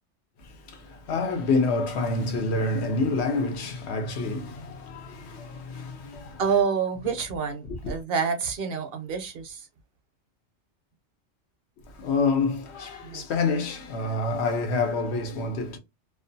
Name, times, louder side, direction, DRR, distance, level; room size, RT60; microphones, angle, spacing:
voice 1, 0.4-6.4 7.7-8.0 11.9-15.8, left 3 dB, 75° left, 0.9 m, -28 dB
voice 2, 6.4-9.7 13.0-13.2, right 6 dB, 65° right, 0.7 m, -27 dB
2.4 x 2.2 x 2.5 m
omnidirectional pair, 1.1 m